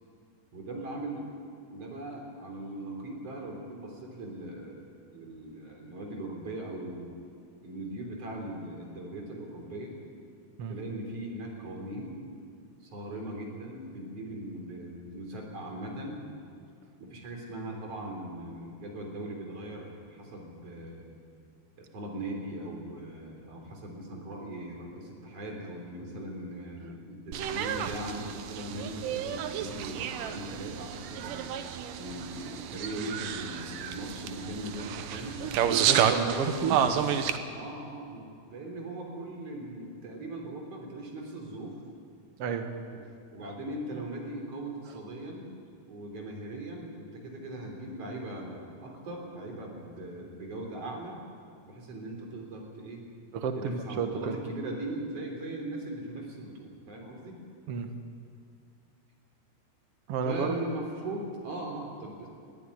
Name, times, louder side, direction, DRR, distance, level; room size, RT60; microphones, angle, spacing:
voice 1, 0.5-1.3 1.7-4.8 5.1-7.2 7.6-10.0 10.7-12.1 12.8-16.2 17.0-21.2 21.8-31.5 32.0-35.4 36.2-37.1 37.5-41.8 43.3-45.5 45.9-51.2 51.7-53.1 53.6-57.4 60.2-62.3, right 1 dB, 40° right, 1 dB, 4.3 m, -39 dB
sound 1, 27.3-37.4, right 9 dB, 70° right, 2.2 m, -31 dB
voice 2, 35.6-36.8 42.4-42.7 43.4-43.5 53.3-54.4 57.7-58.0 60.1-60.6, right 6 dB, 90° right, 6 dB, 1.3 m, -31 dB
22.5 x 14.5 x 10.0 m, 2.4 s
omnidirectional pair, 4.7 m